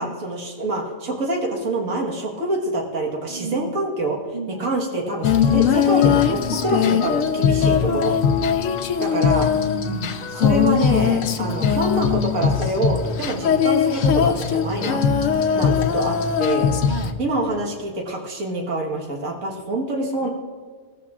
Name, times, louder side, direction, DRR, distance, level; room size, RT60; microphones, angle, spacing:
voice 1, 0.0-4.2 4.5-8.1 9.0-9.5 10.4-15.0 15.5-16.7 17.2-20.3, right 2 dB, 90° right, 0 dB, 1.9 m, -26 dB
voice 2, 3.3-3.8 4.3-4.7 7.9-8.1 9.5-10.3 11.3-11.6 13.3-13.5 16.9-17.2 20.2-20.3, right 5 dB, 60° right, 6 dB, 0.5 m, -33 dB
Female singing, 5.2-17.1, left 7 dB, 80° left, 1.1 m, -20 dB
17.5 x 14.0 x 2.4 m, 1.5 s
omnidirectional pair, 1.4 m